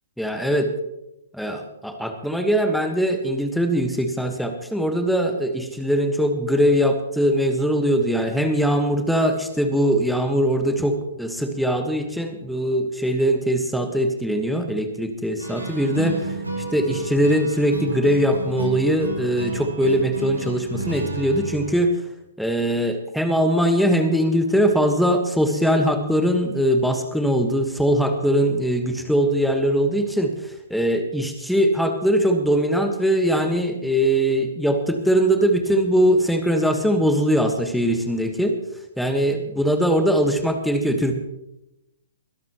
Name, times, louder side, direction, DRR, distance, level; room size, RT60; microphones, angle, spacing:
voice 1, 0.2-0.7 1.3-16.4 16.7-22.0 22.4-30.3 30.7-38.5 39.0-41.1, equal, ahead, 5 dB, 1.4 m, -21 dB
sound 1, 15.4-21.7, right 2 dB, 85° right, 3.4 m, -32 dB
22.0 x 12.0 x 3.0 m, 0.88 s
figure-of-eight pair, 120°, 0 cm